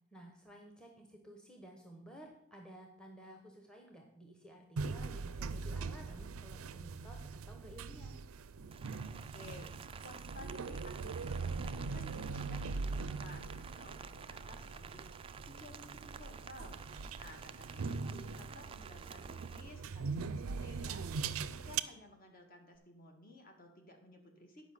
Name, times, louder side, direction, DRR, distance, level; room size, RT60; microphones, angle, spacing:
voice 1, 0.1-8.2, right 1 dB, 5° left, 2 dB, 1.0 m, -54 dB
sound 1, 4.8-21.8, right 4 dB, 85° right, 0.5 m, -41 dB
Rain, 8.7-19.6, right 6 dB, 25° right, 0.3 m, -51 dB
voice 2, 9.3-9.7 10.0-15.1 15.4-16.8 17.2-21.1 21.5-24.7, left 1 dB, 45° left, 3 dB, 1.7 m, -55 dB
9.9 x 5.4 x 6.7 m, 0.79 s
head